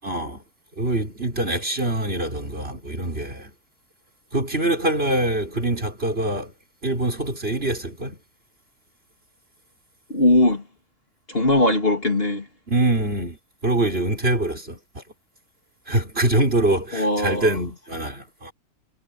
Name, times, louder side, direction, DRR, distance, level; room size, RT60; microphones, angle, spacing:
voice 1, 0.0-0.4 0.8-3.5 4.3-6.5 6.8-8.2 12.7-15.0 15.9-18.5, right 1 dB, 40° right, 5.3 m, -24 dB
voice 2, 10.1-10.6 11.3-12.5 16.9-17.5, left 1 dB, 35° left, 3.2 m, -20 dB
omnidirectional pair, 1.7 m